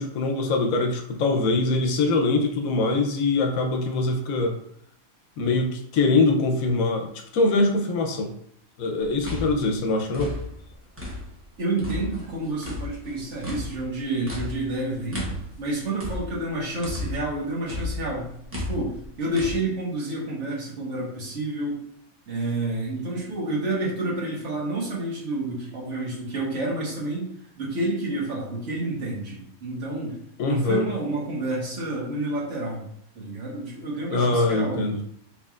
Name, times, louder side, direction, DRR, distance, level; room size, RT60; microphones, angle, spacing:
voice 1, 0.0-4.6 5.4-8.3 8.8-10.4 30.4-30.9 34.1-35.0, left 3 dB, 75° left, 4 dB, 1.0 m, -23 dB
sound 1, 9.0-11.5 11.8-17.4 17.7-19.6, left 1 dB, 10° right, 0.7 m, -34 dB
voice 2, 11.6-15.3 15.6-21.8 22.3-27.3 27.6-30.2 30.4-32.9 33.1-35.0, right 2 dB, 60° right, -4 dB, 1.4 m, -29 dB
4.2 x 3.1 x 2.4 m, 0.70 s
omnidirectional pair, 1.5 m